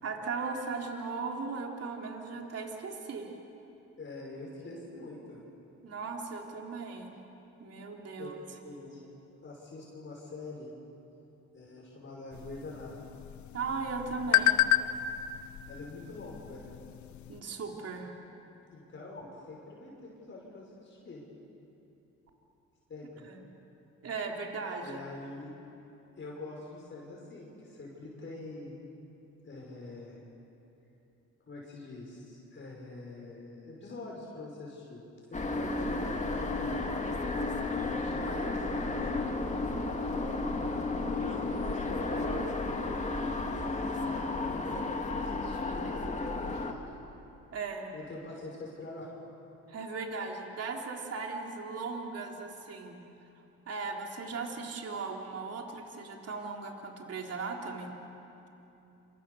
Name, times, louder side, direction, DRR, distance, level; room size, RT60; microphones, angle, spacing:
voice 1, 0.0-3.3 5.8-7.2 7.6-8.4 13.5-14.6 17.3-18.1 23.2-23.4 24.0-25.0 47.5-47.9 49.7-53.0 53.7-57.9, right 4 dB, 55° right, 1 dB, 3.6 m, -37 dB
voice 2, 4.0-5.4 8.2-8.3 8.6-9.0 9.4-10.7 11.5-13.0 15.7-16.7 18.7-21.2 22.9-23.3 24.8-25.5 26.2-28.7 29.4-30.2 31.4-35.0 35.3-36.8 37.9-42.9 43.4-46.8 47.9-49.1, left 2 dB, 40° left, -3 dB, 5.7 m, -45 dB
sound 1, 12.3-17.4, left 13 dB, 70° left, 0.9 m, -31 dB
sound 2, 35.3-46.7, left 2 dB, 25° left, 2.3 m, -33 dB
27.5 x 25.5 x 7.0 m, 2.9 s
cardioid pair, 90°, 30 cm